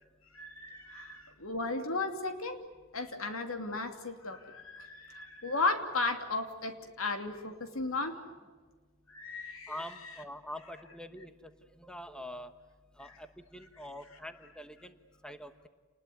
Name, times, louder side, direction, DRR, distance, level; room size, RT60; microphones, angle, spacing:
voice 1, 0.3-2.6 2.9-8.2 9.1-9.7, left 3 dB, 80° left, 6 dB, 2.9 m, -35 dB
voice 2, 9.7-12.5 13.0-13.3 13.5-15.0 15.2-15.7, left 1 dB, 5° left, 9 dB, 1.1 m, -45 dB
29.0 x 20.5 x 9.6 m, 1.4 s
head